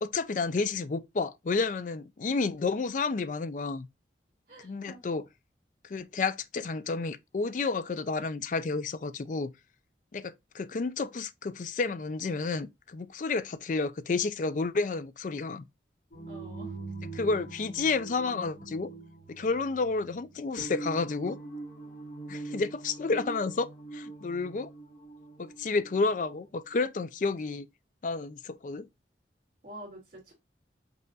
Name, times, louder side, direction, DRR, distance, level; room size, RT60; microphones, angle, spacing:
voice 1, 0.0-3.9 4.6-5.3 5.9-9.5 10.1-15.6 17.1-18.9 19.3-21.4 22.3-23.7 23.9-24.7 25.4-27.7 28.0-28.9, left 4 dB, 45° left, 0.4 m, -30 dB
voice 2, 4.5-5.0 16.3-16.7 29.6-30.3, right 1 dB, 50° right, 2.0 m, -47 dB
sound 1, 16.1-26.0, right 3 dB, 85° left, 2.1 m, -42 dB
5.4 x 2.5 x 3.8 m
head